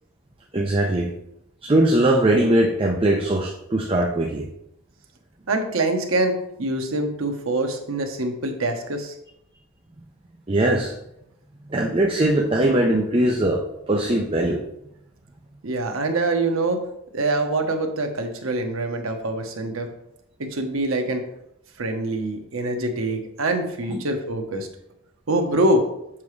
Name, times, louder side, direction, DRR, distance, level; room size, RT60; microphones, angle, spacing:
voice 1, 0.5-1.1 1.6-4.5 10.5-10.9 11.7-14.6 23.9-24.0, right 1 dB, 25° right, 0 dB, 0.5 m, -20 dB
voice 2, 5.5-9.1 15.6-16.8 17.1-19.9 20.4-21.3 21.8-24.7 25.3-25.9, right 2 dB, 80° right, 4 dB, 1.0 m, -24 dB
7.3 x 4.8 x 3.2 m, 0.79 s
head